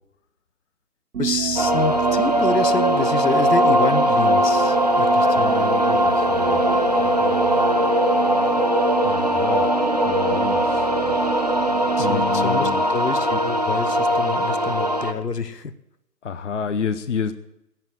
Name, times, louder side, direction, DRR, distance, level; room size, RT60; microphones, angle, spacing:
sound 1, 1.1-13.2, right 7 dB, 70° right, 1.0 m, -27 dB
voice 1, 1.2-6.0 12.0-15.7, left 5 dB, 80° left, 15 dB, 1.2 m, -28 dB
sound 2, 1.6-15.1, equal, 25° right, 0.5 m, -20 dB
voice 2, 5.3-6.6 7.2-7.6 9.0-9.7 10.1-10.9 12.0-12.8 16.2-17.3, left 6 dB, 50° left, 12 dB, 0.9 m, -30 dB
17.0 x 7.3 x 8.0 m, 0.85 s
figure-of-eight pair, 150°, 47 cm